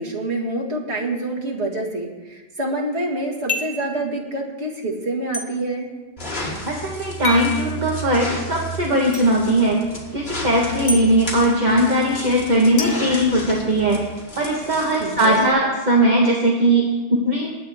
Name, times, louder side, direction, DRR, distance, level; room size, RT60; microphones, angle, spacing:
voice 1, 0.0-5.9 15.0-15.5, right 2 dB, 80° right, -3 dB, 2.3 m, -26 dB
sound 1, 3.5-3.9 5.3-5.5 7.2-7.5 9.1-9.3 10.9-11.0 12.8-13.9, left 2 dB, 40° left, 1.4 m, -28 dB
sound 2, 6.2-15.5, left 1 dB, 70° left, 2.3 m, -33 dB
voice 2, 6.7-9.8 10.1-14.0 14.4-17.5, right 1 dB, 40° right, -2 dB, 1.6 m, -19 dB
20.5 x 8.8 x 3.5 m, 1.3 s
omnidirectional pair, 1.1 m